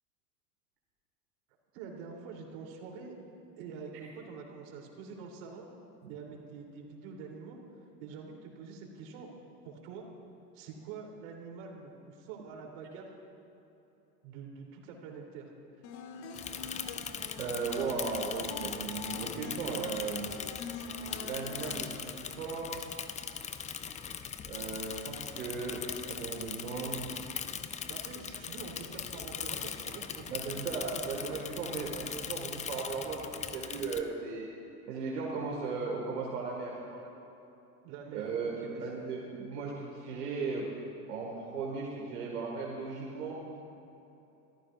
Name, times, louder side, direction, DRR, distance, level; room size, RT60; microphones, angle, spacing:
voice 1, 1.7-3.1 3.6-5.7 6.1-7.6 8.0-9.3 9.6-10.0 10.5-13.1 14.2-15.5 27.9-31.4 36.9-37.1 37.8-38.9 41.0-41.2, right 5 dB, 60° right, -1 dB, 3.3 m, -46 dB
sound 1, 15.8-21.7, left 4 dB, 60° left, 1.4 m, -45 dB
Bicycle / Mechanisms, 16.3-34.0, left 7 dB, 15° left, 0.4 m, -40 dB
voice 2, 17.4-20.3 21.2-22.9 24.5-27.1 30.3-34.5 34.9-36.8 38.1-40.7 41.1-43.4, right 4 dB, 85° right, -3 dB, 1.9 m, -36 dB
26.5 x 14.0 x 2.5 m, 3.0 s
hypercardioid pair, 85°, 46 cm